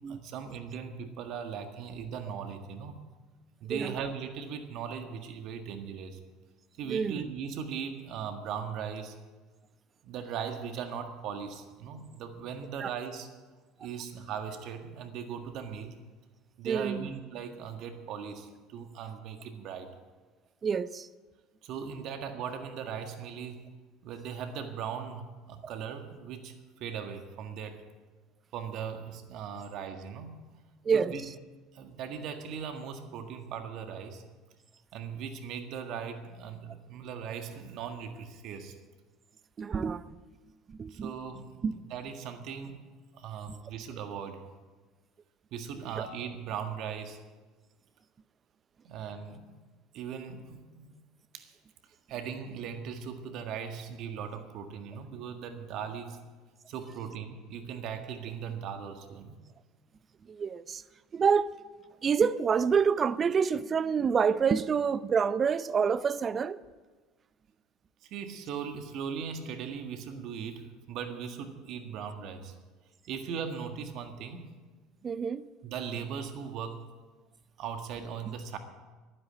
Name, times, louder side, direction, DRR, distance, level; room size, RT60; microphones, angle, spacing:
voice 1, 0.1-3.0 3.6-6.2 6.8-9.1 10.0-13.3 13.8-16.0 16.6-19.9 21.6-23.6 24.0-27.8 28.5-30.5 30.9-31.2 31.7-34.2 34.9-38.7 40.9-42.8 43.1-44.4 45.5-47.2 48.8-49.5 49.9-51.0 51.3-51.6 52.1-56.2 56.7-59.4 62.0-62.1 68.0-72.5 73.1-74.5 75.6-76.8 77.6-78.6, right 7 dB, 60° right, 1.7 m, -39 dB
voice 2, 6.9-7.2 12.8-12.9 16.6-17.1 20.6-21.1 30.8-31.2 39.6-40.2 40.7-41.1 41.6-41.7 46.0-46.1 60.3-60.8 61.1-61.5 62.0-66.6 75.0-75.5, right 6 dB, 35° right, 0.6 m, -27 dB
11.5 x 9.8 x 9.0 m
hypercardioid pair, 75°, 0 cm